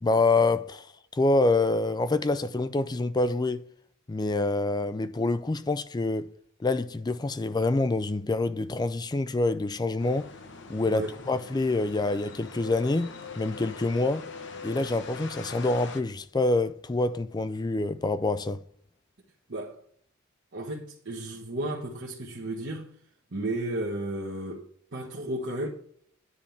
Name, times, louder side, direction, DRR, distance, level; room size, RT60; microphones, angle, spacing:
voice 1, 0.0-0.9 1.1-3.6 4.1-6.3 6.6-10.3 10.7-14.3 14.6-18.6, left 2 dB, 20° left, 0.4 m, -26 dB
sound 1, 10.0-16.0, left 4 dB, 55° left, 0.9 m, -42 dB
voice 2, 20.5-22.9 23.3-24.6 24.9-25.7, right 1 dB, 55° right, 1.3 m, -33 dB
9.8 x 3.5 x 7.1 m
head